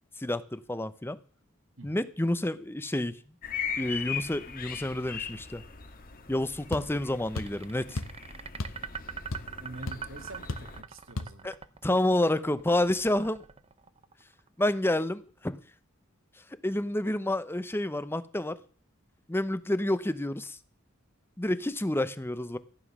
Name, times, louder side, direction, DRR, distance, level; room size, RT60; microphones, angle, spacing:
voice 1, 0.2-1.2 1.8-3.2 3.8-5.6 6.3-8.0 11.4-11.5 11.8-13.4 14.6-15.6 16.6-18.6 19.3-20.6 21.4-22.6, left 1 dB, 10° left, 0.7 m, -29 dB
sound 1, 3.4-10.8, left 6 dB, 45° left, 1.5 m, -39 dB
sound 2, 6.7-6.9 7.3-7.6 8.0-8.2 8.6-8.8 9.1-9.6 9.9-10.0 10.5-10.7 11.2-11.3, left 2 dB, 75° left, 1.2 m, -34 dB
sound 3, 7.3-14.5, right 6 dB, 30° right, 0.7 m, -43 dB
voice 2, 9.6-11.5, right 2 dB, 70° right, 2.0 m, -45 dB
14.5 x 9.5 x 6.1 m
head